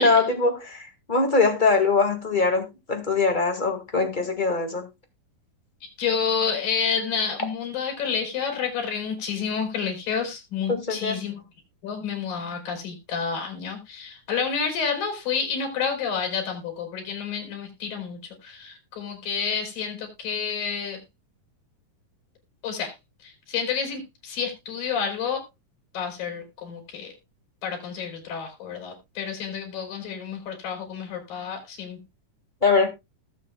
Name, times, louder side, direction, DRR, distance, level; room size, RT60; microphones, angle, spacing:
voice 1, 0.0-4.9 10.7-11.2 32.6-32.9, left 4 dB, 25° left, 1.1 m, -22 dB
voice 2, 6.0-11.4 11.8-21.0 22.6-22.9 23.2-25.4 25.9-27.1 27.6-32.0, left 6 dB, 85° left, 5.2 m, -29 dB
19.0 x 7.4 x 2.2 m
omnidirectional pair, 3.9 m